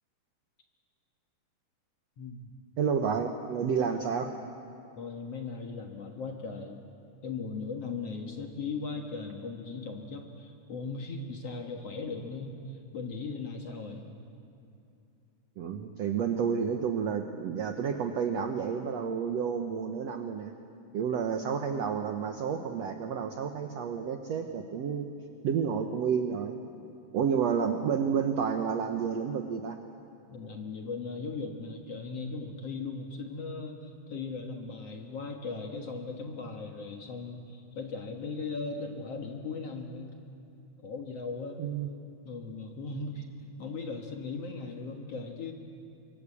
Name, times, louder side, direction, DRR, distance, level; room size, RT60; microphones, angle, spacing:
voice 1, 2.2-2.5 5.0-6.8 7.2-14.1 30.3-40.2 40.8-41.6 42.2-45.5, left 4 dB, 55° left, 3 dB, 2.0 m, -38 dB
voice 2, 2.8-4.3 15.6-20.5 20.9-25.1 25.4-26.6 27.1-29.8 41.6-41.9 42.9-43.0, right 7 dB, 70° right, 6 dB, 1.5 m, -30 dB
24.5 x 23.5 x 8.6 m, 2.6 s
omnidirectional pair, 4.3 m